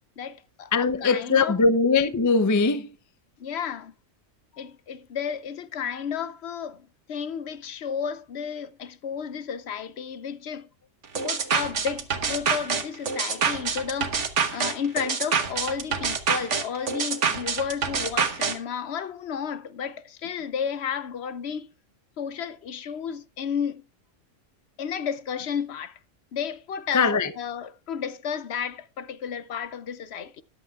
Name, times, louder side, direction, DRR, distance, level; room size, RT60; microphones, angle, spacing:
voice 1, 0.2-1.6 3.4-3.9 4.6-10.7 11.2-14.2 14.5-21.7 22.2-23.9 24.8-26.0 26.3-27.1 27.4-30.4, left 7 dB, 60° left, 0.8 m, -32 dB
voice 2, 0.7-2.9 26.9-27.3, left 4 dB, 25° left, 0.4 m, -21 dB
sound 1, 11.2-18.6, right 6 dB, 70° right, 1.5 m, -26 dB
13.5 x 11.0 x 2.4 m
omnidirectional pair, 1.3 m